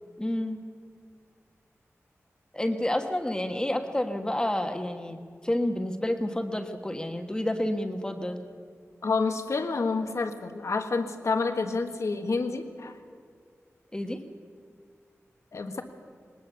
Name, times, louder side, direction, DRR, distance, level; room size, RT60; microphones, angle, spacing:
voice 1, 0.2-0.6 2.5-8.4 13.9-14.2, left 1 dB, 15° left, 5 dB, 1.3 m, -29 dB
voice 2, 9.0-13.0 15.5-15.8, left 4 dB, 75° left, 6 dB, 1.5 m, -28 dB
20.0 x 19.0 x 7.0 m, 2.1 s
wide cardioid pair, 85°, 5 cm